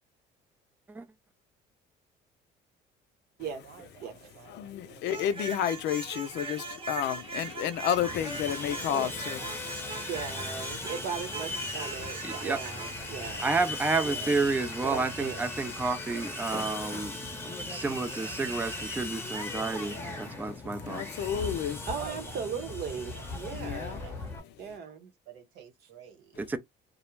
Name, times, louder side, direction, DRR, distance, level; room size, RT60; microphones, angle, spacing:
voice 1, 3.6-5.3 10.2-10.3 12.3-12.6 13.0-13.2 13.9-14.2 22.0-23.3 23.9-24.3 25.2-26.6, right 9 dB, 90° right, 1.3 m, -50 dB
voice 2, 4.5-9.9 19.9-21.9 23.5-24.0, left 10 dB, 65° left, 0.5 m, -32 dB
sound 1, 5.1-13.0, right 4 dB, 30° right, 0.8 m, -40 dB
Sawing, 8.0-24.4, left 2 dB, 10° left, 0.8 m, -38 dB
voice 3, 10.1-13.5 14.0-14.4 14.8-15.4 21.9-24.0 24.6-25.1, right 6 dB, 60° right, 0.8 m, -38 dB
voice 4, 12.2-12.6 13.4-17.2 17.7-21.0 26.4-26.6, right 3 dB, 10° right, 0.4 m, -30 dB
2.4 x 2.1 x 3.1 m
cardioid pair, 110°, 19 cm